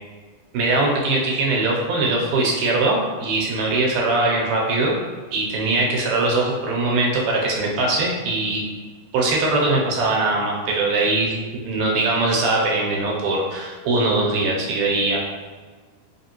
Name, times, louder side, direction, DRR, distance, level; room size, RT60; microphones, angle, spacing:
voice 1, 0.5-5.0 5.3-8.6 9.1-11.3 11.6-15.2, right 2 dB, 75° right, -2 dB, 1.9 m, -21 dB
4.1 x 3.1 x 2.8 m, 1.4 s
omnidirectional pair, 3.4 m